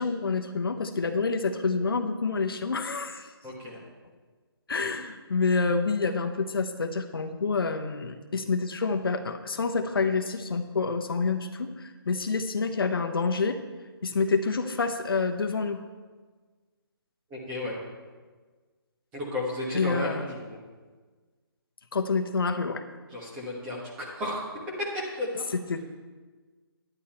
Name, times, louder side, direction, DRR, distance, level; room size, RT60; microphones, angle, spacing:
voice 1, 0.0-3.3 4.7-13.6 14.0-15.8 19.7-20.2 21.9-22.8 25.5-25.8, left 4 dB, 65° left, 6 dB, 1.0 m, -28 dB
voice 2, 3.4-3.8 17.3-17.8 19.1-20.6 23.1-24.5 24.8-25.4, left 1 dB, 10° right, -4 dB, 1.4 m, -33 dB
11.0 x 9.9 x 4.4 m, 1.4 s
hypercardioid pair, 175°, 13 cm